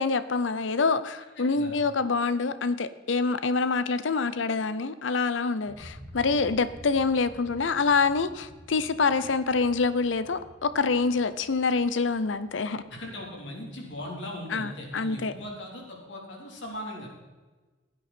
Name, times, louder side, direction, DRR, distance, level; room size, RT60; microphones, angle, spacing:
voice 1, 0.0-12.8 14.5-15.3, left 4 dB, 90° left, 0.7 m, -26 dB
sound 1, 5.6-14.5, equal, 40° left, 4.2 m, -50 dB
voice 2, 12.9-17.1, left 1 dB, 70° left, 3.6 m, -39 dB
16.0 x 9.6 x 4.4 m
head